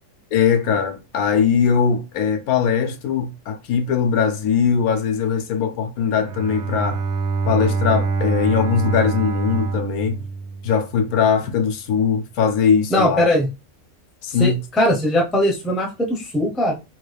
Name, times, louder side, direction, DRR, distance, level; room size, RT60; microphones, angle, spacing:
voice 1, 0.3-7.0 7.4-10.2 10.6-13.3 14.2-14.6, left 6 dB, 85° left, 1.1 m, -20 dB
Bowed string instrument, 6.1-11.1, right 4 dB, 65° right, 0.7 m, -25 dB
voice 2, 12.9-13.5 14.4-16.7, left 1 dB, ahead, 0.4 m, -20 dB
3.4 x 2.3 x 3.3 m
omnidirectional pair, 1.5 m